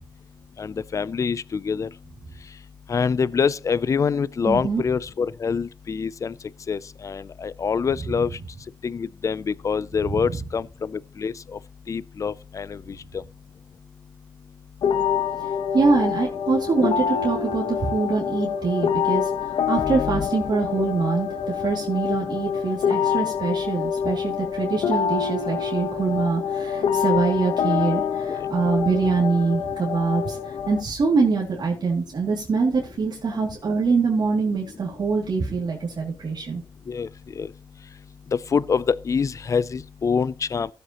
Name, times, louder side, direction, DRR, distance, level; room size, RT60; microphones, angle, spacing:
voice 1, 0.6-1.9 2.9-6.3 6.7-8.3 8.8-11.3 11.9-12.8 13.1-13.2 19.8-20.3 28.3-28.5 36.9-37.1 37.4-37.5 38.3-40.7, left 6 dB, 40° left, 0.4 m, -25 dB
voice 2, 4.5-4.8 15.7-21.3 21.5-36.6, right 4 dB, 55° right, 2.5 m, -24 dB
sound 1, 14.8-30.8, left 7 dB, 90° left, 1.0 m, -26 dB
17.0 x 7.7 x 2.9 m
cardioid pair, 95°, 8 cm